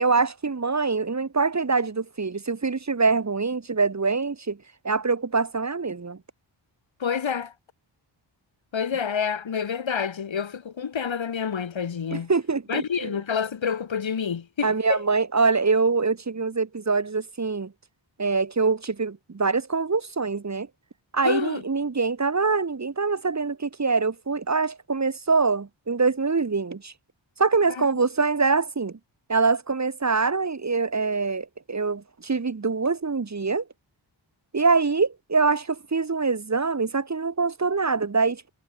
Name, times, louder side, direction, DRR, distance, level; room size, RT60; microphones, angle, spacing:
voice 1, 0.0-4.6 4.8-6.2 12.1-13.1 14.6-17.7 18.2-20.7 21.1-26.9 27.4-29.0 29.3-33.6 34.5-38.5, right 4 dB, 35° right, 2.8 m, -24 dB
voice 2, 7.0-7.5 8.7-12.3 12.7-15.0 21.2-21.6 27.8-27.9, left 7 dB, 75° left, 4.2 m, -28 dB
wide cardioid pair, 160°, 46 cm